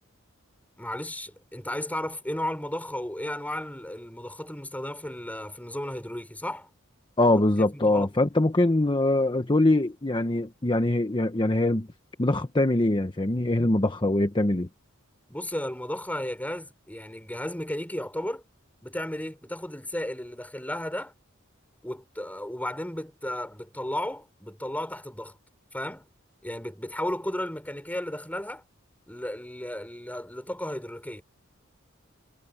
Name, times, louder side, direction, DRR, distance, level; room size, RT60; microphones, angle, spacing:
voice 1, 0.8-6.7 7.3-7.4 7.7-8.1 15.3-18.4 18.8-21.1 21.8-25.4 25.7-26.1 26.4-28.6 29.1-31.2, left 1 dB, 10° left, 5.9 m, -34 dB
voice 2, 7.2-11.9 12.2-14.7, left 2 dB, 25° left, 0.9 m, -23 dB
head